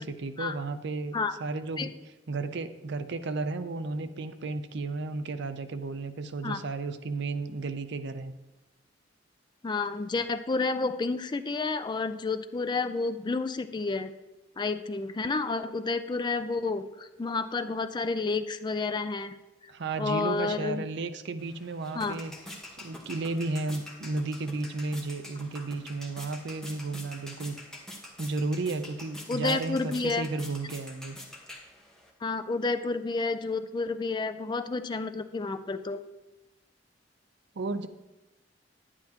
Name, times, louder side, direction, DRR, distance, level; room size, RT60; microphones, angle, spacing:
voice 1, 0.0-1.9 2.3-8.3 19.7-22.3 22.7-27.6 28.2-31.2 37.6-37.9, right 3 dB, 65° right, 10 dB, 0.6 m, -33 dB
voice 2, 9.6-14.1 14.6-19.4 20.0-20.8 21.9-22.2 29.3-30.3 32.2-36.0, left 3 dB, 25° left, 10 dB, 0.3 m, -30 dB
sound 1, 21.4-32.1, left 1 dB, 5° left, 1.2 m, -46 dB
10.5 x 9.8 x 2.9 m, 1.0 s
head